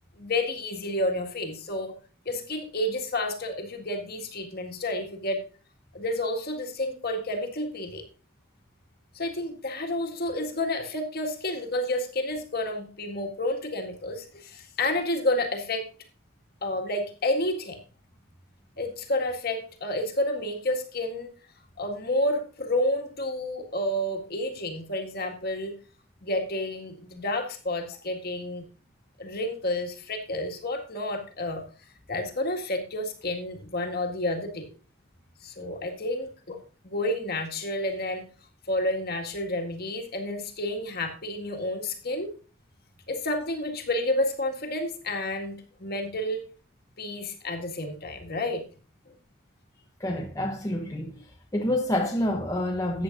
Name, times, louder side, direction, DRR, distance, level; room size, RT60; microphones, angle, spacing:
voice 1, 0.2-1.9 2.3-5.4 5.9-8.1 9.1-15.9 16.6-17.8 18.8-21.3 21.8-25.8 26.2-28.7 29.2-31.6 32.1-34.7 35.4-36.6 36.8-38.3 38.7-42.3 43.1-46.4 47.0-48.6, left 1 dB, 45° left, 1.8 m, -30 dB
voice 2, 50.0-51.2 51.5-53.0, left 1 dB, 15° left, 1.0 m, -27 dB
14.0 x 8.6 x 2.6 m
head